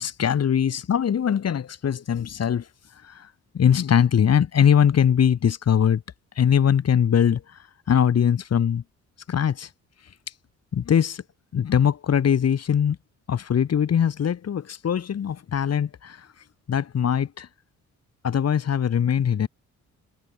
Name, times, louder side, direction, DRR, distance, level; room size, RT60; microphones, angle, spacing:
voice 1, 0.0-2.7 3.0-3.3 3.5-6.0 6.4-7.6 7.9-8.8 9.3-9.7 10.7-11.2 11.5-13.0 13.3-16.3 16.7-17.5 18.2-19.5, left 8 dB, 55° left, 7.1 m, -21 dB
cardioid pair, 90°, 30 cm